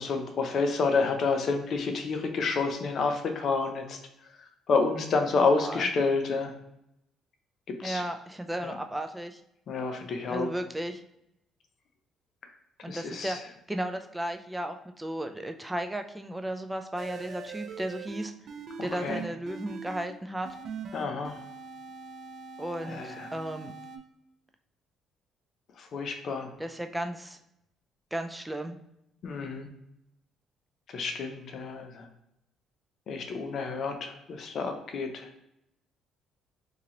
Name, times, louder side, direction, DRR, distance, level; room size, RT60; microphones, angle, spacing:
voice 1, 0.0-4.0 4.7-6.5 7.7-8.0 8.6-8.8 9.7-10.5 12.9-13.4 18.8-19.2 20.9-21.4 22.8-23.3 25.8-26.5 29.2-29.7 30.9-32.1 33.1-35.3, left 4 dB, 55° left, 5 dB, 0.7 m, -29 dB
voice 2, 7.8-9.4 10.3-11.0 12.8-18.3 18.8-20.5 22.6-23.7 26.6-27.4 28.1-28.8, right 1 dB, 10° right, 6 dB, 0.3 m, -34 dB
sound 1, 17.0-20.1 20.4-24.0, right 5 dB, 55° right, 0.5 m, -42 dB
2.8 x 2.8 x 3.8 m, 0.82 s
cardioid pair, 95°, 0 cm